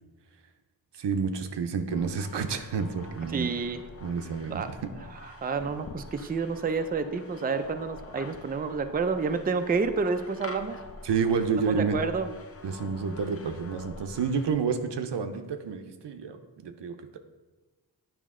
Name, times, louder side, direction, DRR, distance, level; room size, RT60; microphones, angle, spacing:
voice 1, 1.0-3.5 4.0-4.9 11.0-12.0 12.6-16.4 16.6-17.2, right 5 dB, 85° right, 7 dB, 0.7 m, -29 dB
sound 1, 1.9-14.5, left 3 dB, 35° left, 0.6 m, -46 dB
voice 2, 3.3-3.9 4.5-4.7 5.1-10.8 11.8-12.3, right 4 dB, 25° right, 8 dB, 0.4 m, -29 dB
9.3 x 5.0 x 3.7 m, 1.2 s
wide cardioid pair, 105°, 41 cm